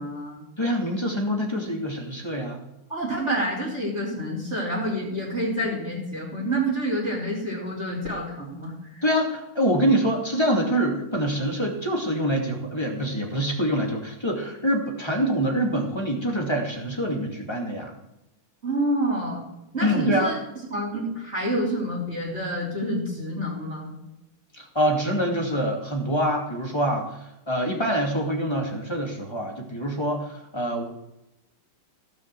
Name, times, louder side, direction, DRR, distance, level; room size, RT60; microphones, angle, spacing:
voice 1, 0.0-0.4 2.9-9.0 18.6-19.4 19.7-20.3 20.7-23.9, right 1 dB, 30° right, -8 dB, 4.3 m, -28 dB
voice 2, 0.6-2.6 9.0-17.9 19.8-20.3 24.5-30.8, equal, 15° left, 0 dB, 2.3 m, -25 dB
17.0 x 6.5 x 7.6 m, 0.91 s
omnidirectional pair, 2.3 m